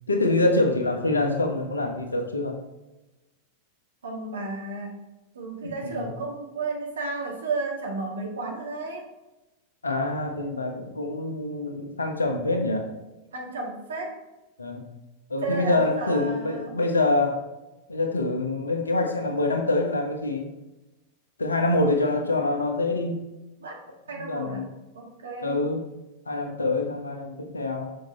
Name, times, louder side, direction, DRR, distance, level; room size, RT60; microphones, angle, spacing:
voice 1, 0.1-2.6 5.6-6.1 9.8-12.9 14.6-14.9 15.3-17.4 17.9-20.5 21.4-23.2 24.1-24.7 25.4-25.9 26.3-27.9, left 2 dB, 75° left, 4 dB, 1.1 m, -25 dB
voice 2, 4.0-5.0 5.3-9.0 13.3-14.1 15.4-16.8 23.6-23.8 24.1-24.7 24.9-25.5, right 3 dB, 65° right, 0 dB, 1.7 m, -32 dB
6.5 x 5.6 x 4.2 m, 1.0 s
figure-of-eight pair, 90°, 0 cm